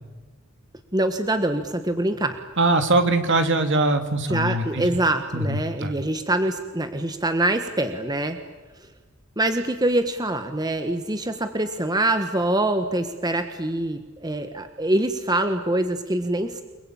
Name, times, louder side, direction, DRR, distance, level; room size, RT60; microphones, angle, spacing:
voice 1, 0.9-2.4 4.3-8.4 9.4-16.6, right 1 dB, 20° right, 7 dB, 1.4 m, -24 dB
voice 2, 2.6-4.8 5.3-5.9, right 2 dB, 55° right, 7 dB, 2.7 m, -22 dB
29.5 x 21.0 x 8.8 m, 1.3 s
head